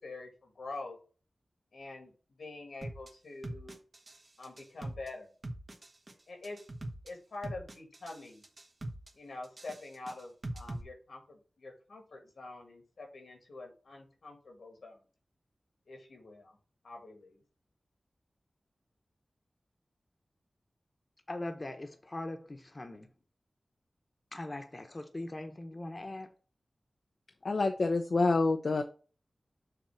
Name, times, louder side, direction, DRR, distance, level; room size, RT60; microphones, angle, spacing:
voice 1, 0.0-1.0 1.7-2.1 2.4-3.8 4.4-5.3 6.3-6.6 7.0-8.4 9.1-15.0 15.9-16.6 16.8-17.4, left 2 dB, 90° left, 2 dB, 2.1 m, -46 dB
sound 1, 2.8-3.1 3.4-4.2 4.4-5.1 5.4-6.1 6.4-7.1 7.4-8.2 8.4-9.1 9.4-10.8, right 1 dB, 55° right, 1.3 m, -41 dB
voice 2, 21.3-23.1 24.3-26.3, left 2 dB, 40° left, 6 dB, 1.1 m, -41 dB
voice 3, 27.4-28.8, left 3 dB, 70° left, 5 dB, 0.7 m, -27 dB
6.7 x 3.0 x 5.9 m, 0.37 s
cardioid pair, 40°, 0 cm